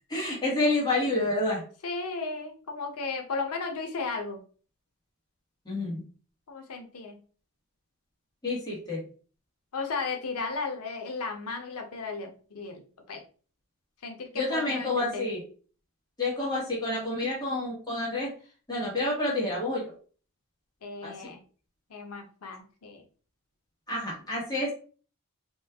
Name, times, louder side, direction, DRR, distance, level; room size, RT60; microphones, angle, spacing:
voice 1, 0.1-1.6 5.7-6.0 8.4-9.0 14.3-15.4 16.2-18.3 18.7-19.9 21.0-21.1 23.9-24.7, left 2 dB, 20° left, -4 dB, 1.1 m, -28 dB
voice 2, 1.8-4.4 6.5-7.2 9.7-13.2 14.0-15.2 20.8-21.4 21.9-23.0, left 4 dB, 85° left, 4 dB, 0.7 m, -35 dB
3.0 x 2.3 x 3.4 m, 0.40 s
head